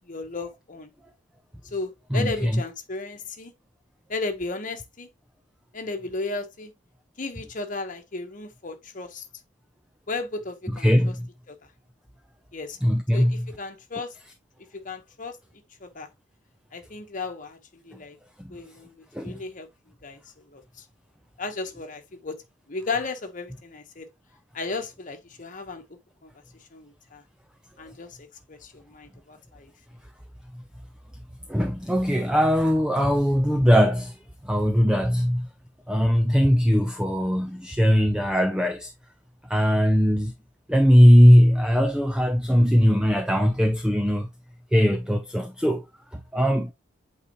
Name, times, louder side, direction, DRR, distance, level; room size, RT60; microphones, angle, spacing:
voice 1, 0.1-0.9 1.7-3.5 4.1-5.1 5.7-6.7 7.2-9.2 10.1-11.1 11.5-11.6 12.5-12.8 13.1-14.1 14.8-15.4 15.8-16.1 16.7-17.6 17.8-18.2 18.5-19.7 20.0-20.2 20.5-20.6 21.4-22.3 22.7-24.1 24.5-25.8 26.2-26.3 26.7-27.2 27.8-29.7, left 3 dB, 45° left, 1.2 m, -34 dB
voice 2, 2.1-2.6 10.7-11.3 12.8-13.5 19.1-19.4 31.5-34.2 34.4-35.5 35.9-38.9 39.5-40.3 40.7-44.3 44.7-45.8 46.1-46.7, equal, 5° right, 0.6 m, -20 dB
8.3 x 4.2 x 3.0 m
head